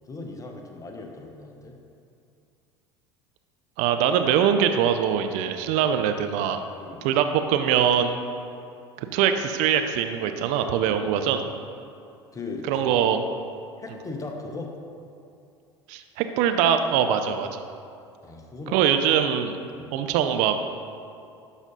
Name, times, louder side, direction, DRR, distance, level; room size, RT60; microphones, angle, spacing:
voice 1, 0.1-1.8 6.8-7.0 10.9-11.1 12.3-13.1 13.8-14.7 18.2-19.1 19.7-20.0, left 3 dB, 20° left, 2 dB, 1.2 m, -38 dB
voice 2, 3.8-6.6 7.0-8.2 9.1-11.5 12.7-13.2 15.9-17.6 18.7-19.6 19.9-20.6, right 8 dB, 55° right, 8 dB, 0.6 m, -22 dB
12.0 x 4.1 x 5.3 m, 2.5 s
figure-of-eight pair, 70°, 15 cm